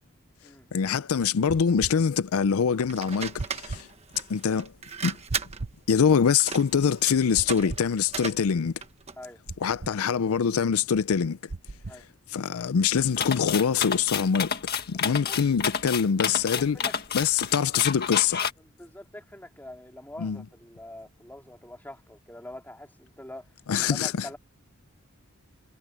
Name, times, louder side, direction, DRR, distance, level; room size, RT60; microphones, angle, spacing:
voice 1, 0.7-3.9 4.3-4.7 5.0-5.2 5.9-8.7 9.6-11.4 12.3-14.5 14.9-16.8 17.1-18.4 20.2-20.4 23.7-24.3, left 7 dB, 90° left, 0.5 m, -24 dB
sound 1, 1.5-2.0 3.4-3.8 5.3-5.8 7.4-7.9 9.5-10.0 11.5-12.0, right 3 dB, 55° right, 0.8 m, -37 dB
sound 2, 2.9-9.2, right 6 dB, 30° right, 1.2 m, -37 dB
sound 3, 13.2-18.5, left 7 dB, 45° left, 1.9 m, -29 dB
voice 2, 14.9-15.4 16.5-16.9 18.6-23.5 23.8-24.4, left 1 dB, 10° left, 3.5 m, -44 dB
head